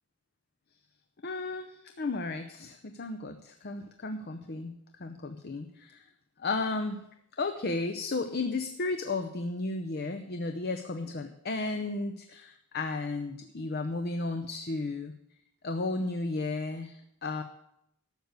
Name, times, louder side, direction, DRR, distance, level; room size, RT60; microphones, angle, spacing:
voice 1, 1.2-6.0 6.4-7.1 7.4-15.1 15.6-17.4, left 3 dB, 45° left, 7 dB, 0.6 m, -34 dB
12.5 x 6.6 x 8.2 m, 0.79 s
head